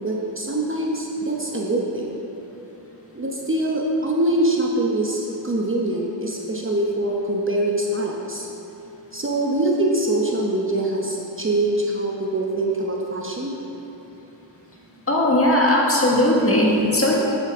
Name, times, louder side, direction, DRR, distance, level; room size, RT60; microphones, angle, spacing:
voice 1, 0.0-2.1 3.1-8.5 9.1-13.5, right 1 dB, 30° right, -2 dB, 1.0 m, -24 dB
voice 2, 15.1-17.1, left 1 dB, 30° left, -3 dB, 1.8 m, -18 dB
8.6 x 8.5 x 3.7 m, 3.0 s
cardioid pair, 80°, 45 cm